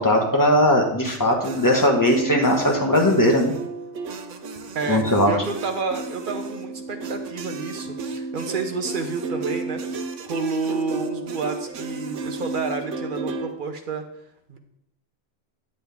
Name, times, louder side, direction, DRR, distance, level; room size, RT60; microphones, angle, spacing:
voice 1, 0.0-3.5 4.9-5.3, left 1 dB, 15° left, 0 dB, 1.3 m, -19 dB
sound 1, 1.0-13.5, right 3 dB, 85° right, 1.1 m, -33 dB
voice 2, 4.7-14.1 14.5-14.6, right 4 dB, 45° right, 5 dB, 1.0 m, -30 dB
9.2 x 7.7 x 3.5 m, 0.78 s
omnidirectional pair, 1.2 m